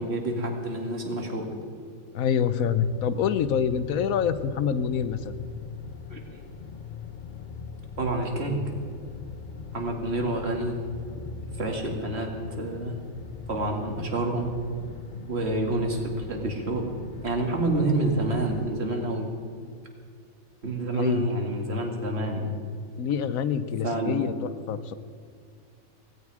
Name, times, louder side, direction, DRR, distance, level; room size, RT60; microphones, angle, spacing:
voice 1, 0.0-1.5 6.1-6.5 8.0-8.6 9.7-10.8 11.5-13.0 13.5-14.5 15.3-16.8 17.2-19.3 20.6-22.5 23.8-24.2, right 2 dB, 50° right, 1 dB, 2.5 m, -28 dB
voice 2, 2.1-5.4 20.9-21.3 23.0-24.3 24.7-24.9, left 7 dB, 85° left, 13 dB, 1.2 m, -26 dB
sound 1, 2.7-18.7, left 5 dB, 40° left, 0.8 m, -41 dB
17.0 x 16.0 x 4.9 m, 2.2 s
omnidirectional pair, 1.5 m